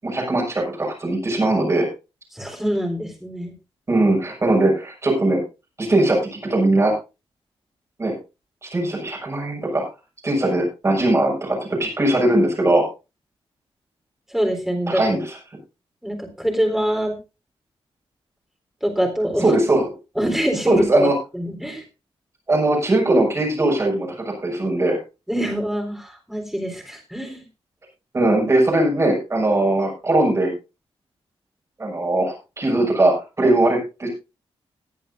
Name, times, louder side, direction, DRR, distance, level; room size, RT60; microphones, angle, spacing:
voice 1, 0.0-1.9 3.9-5.4 5.8-6.9 8.0-8.1 8.6-9.8 10.2-12.8 14.9-15.3 19.4-19.9 20.7-21.1 22.5-25.0 28.1-30.5 31.8-34.1, right 2 dB, 25° right, -1 dB, 6.3 m, -20 dB
voice 2, 2.3-3.5 14.3-15.0 16.0-17.1 18.8-19.5 20.2-21.8 25.3-27.4, equal, 5° right, 1 dB, 4.0 m, -24 dB
19.5 x 10.0 x 2.7 m, 0.29 s
wide cardioid pair, 165°, 10 cm